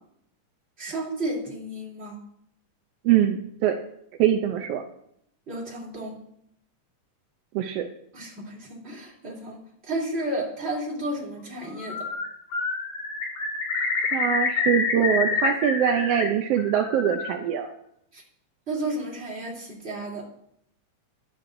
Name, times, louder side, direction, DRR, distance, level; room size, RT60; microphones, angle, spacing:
voice 1, 0.8-2.2 5.5-6.2 8.1-12.1 18.1-18.2 18.7-20.2, right 1 dB, 20° right, -4 dB, 3.1 m, -32 dB
voice 2, 3.0-3.8 4.2-4.8 7.5-7.9 14.1-17.7, right 9 dB, 80° right, 5 dB, 1.4 m, -23 dB
Bird, 11.7-12.3 12.5-16.2 16.6-17.4, left 5 dB, 70° left, 3.1 m, -27 dB
20.5 x 8.3 x 2.6 m, 0.72 s
omnidirectional pair, 3.4 m